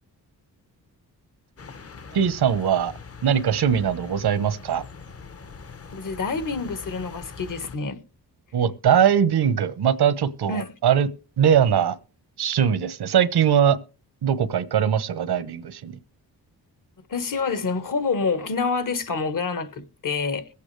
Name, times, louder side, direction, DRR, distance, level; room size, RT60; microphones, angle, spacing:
sound 1, 1.6-7.8, left 5 dB, 40° left, 1.0 m, -42 dB
voice 1, 2.1-2.9 3.2-4.8 8.5-11.1 11.4-12.0 12.4-13.8 14.2-15.9, right 8 dB, 80° right, 1.1 m, -21 dB
voice 2, 5.9-8.0 10.5-10.7 17.1-20.5, left 4 dB, 55° left, 1.6 m, -27 dB
22.0 x 8.4 x 3.3 m
wide cardioid pair, 100°, 38 cm